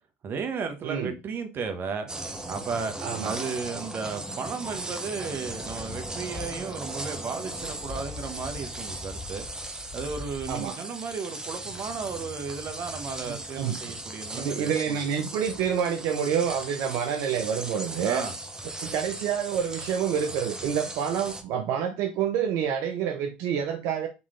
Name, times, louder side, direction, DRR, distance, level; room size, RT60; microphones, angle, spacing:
voice 1, 0.2-2.1 2.5-2.9 3.2-9.5 9.9-15.0 18.0-18.3, right 5 dB, 45° right, 1.0 m, -34 dB
voice 2, 0.8-1.1 3.0-3.4 10.5-10.8 13.2-13.8 14.4-18.3 18.8-24.1, right 8 dB, 65° right, 0.7 m, -28 dB
sound 1, 2.1-21.4, right 2 dB, 15° right, 0.9 m, -38 dB
sound 2, 5.6-10.7, left 5 dB, 35° left, 0.4 m, -43 dB
3.9 x 3.1 x 3.8 m
supercardioid pair, 90°, 5 cm